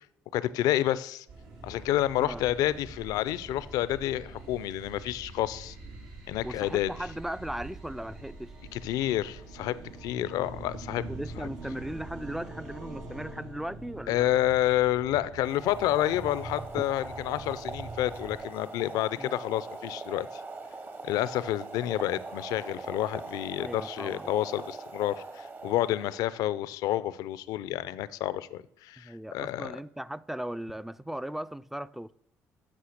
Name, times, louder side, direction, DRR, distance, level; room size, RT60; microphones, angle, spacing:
voice 1, 0.3-1.3 1.6-5.8 6.3-6.9 8.7-9.8 10.0-11.0 11.4-11.5 14.1-20.4 21.0-29.7, left 13 dB, 80° left, 0.5 m, -29 dB
sound 1, 1.3-18.4, right 2 dB, 85° right, 3.2 m, -44 dB
voice 2, 6.4-8.5 11.1-14.3 16.8-16.9 19.2-19.3 23.6-24.3 29.0-32.1, right 1 dB, 5° right, 0.3 m, -37 dB
Boiling, 15.3-26.3, right 3 dB, 30° right, 0.9 m, -42 dB
8.5 x 5.6 x 6.5 m
supercardioid pair, 75°, 6 cm